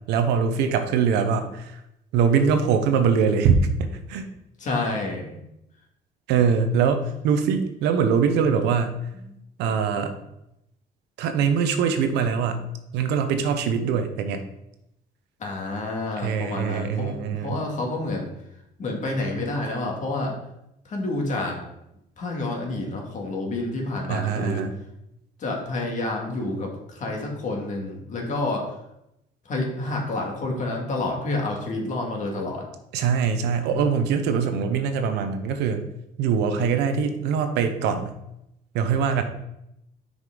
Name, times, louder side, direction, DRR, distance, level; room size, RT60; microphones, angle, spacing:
voice 1, 0.1-1.8 2.1-4.2 6.3-8.9 9.6-10.1 11.2-12.6 12.9-14.4 16.2-17.6 24.1-24.8 32.9-35.8 36.2-38.1 38.7-39.2, right 6 dB, 90° right, 8 dB, 0.8 m, -23 dB
voice 2, 4.6-5.4 15.4-18.3 18.8-20.4 20.9-21.6 22.2-24.6 25.4-28.7 29.5-32.7, left 2 dB, 45° left, 0 dB, 2.0 m, -29 dB
6.2 x 5.2 x 3.8 m, 0.83 s
cardioid pair, 110°, 17 cm